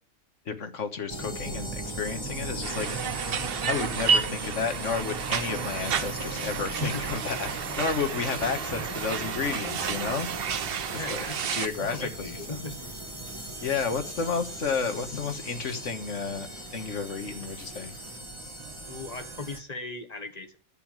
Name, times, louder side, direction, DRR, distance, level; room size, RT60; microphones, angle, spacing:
voice 1, 0.4-3.1 3.7-7.5 7.8-10.3 10.9-11.2 11.5-12.6 13.6-17.9, left 5 dB, 65° left, 8 dB, 1.8 m, -32 dB
sound 1, 1.1-19.6, right 2 dB, 20° right, 1.6 m, -38 dB
sound 2, 2.6-11.7, right 7 dB, 55° right, 0.8 m, -31 dB
sound 3, 10.0-18.2, right 1 dB, 10° left, 1.6 m, -52 dB
voice 2, 10.9-13.0 13.5-13.7 18.9-20.6, left 3 dB, 30° left, 5 dB, 1.4 m, -38 dB
11.0 x 7.0 x 9.1 m, 0.42 s
omnidirectional pair, 1.4 m